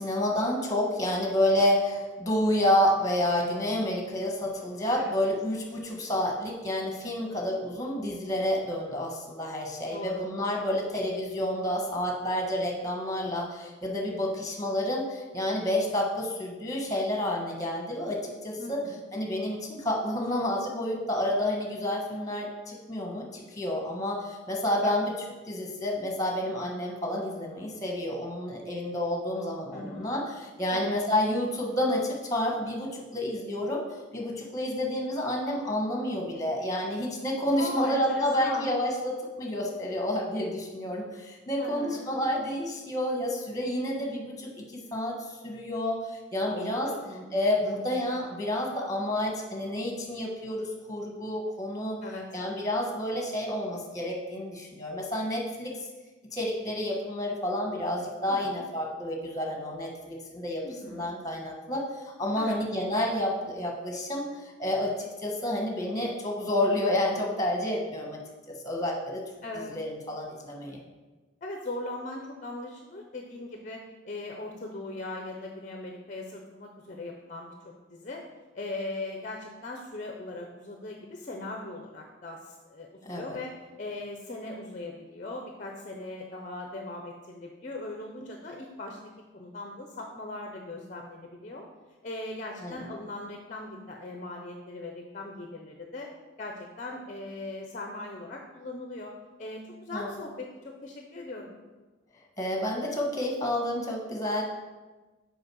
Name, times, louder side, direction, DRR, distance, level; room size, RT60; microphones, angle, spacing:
voice 1, 0.0-18.8 19.1-25.1 25.5-33.8 34.1-45.2 45.4-46.9 47.3-52.0 52.3-55.8 56.3-60.6 60.9-64.3 64.6-68.2 68.5-69.2 69.7-70.8 83.0-83.4 92.6-92.8 99.9-100.1 102.4-104.4, left 1 dB, 15° left, 0 dB, 1.3 m, -29 dB
voice 2, 9.8-10.2 10.8-10.9 18.6-19.0 24.8-25.0 29.7-30.1 30.7-30.9 37.6-38.7 41.6-42.1 46.4-47.2 47.6-48.1 52.0-52.3 58.3-58.6 60.6-61.2 62.3-62.6 69.4-69.8 71.4-78.2 78.5-91.6 92.0-96.1 96.4-99.1 99.4-101.6, left 2 dB, 40° left, 2 dB, 0.6 m, -39 dB
6.3 x 5.0 x 6.2 m, 1.2 s
head